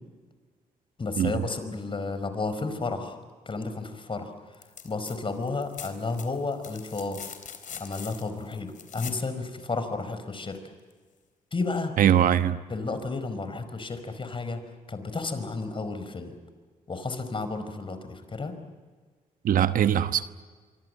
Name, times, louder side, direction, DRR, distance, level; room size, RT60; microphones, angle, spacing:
voice 1, 1.0-3.1 3.4-4.3 4.8-7.2 7.8-10.6 11.5-12.0 12.7-14.6 14.9-16.3 16.9-18.5, left 3 dB, 35° left, 4.9 m, -32 dB
sound 1, 4.5-5.2 5.4-9.3 10.9-11.0, left 7 dB, 60° left, 3.8 m, -42 dB
voice 2, 12.0-12.6 19.4-20.2, right 10 dB, 65° right, 1.2 m, -21 dB
25.5 x 24.5 x 7.8 m
supercardioid pair, 60°, 15 cm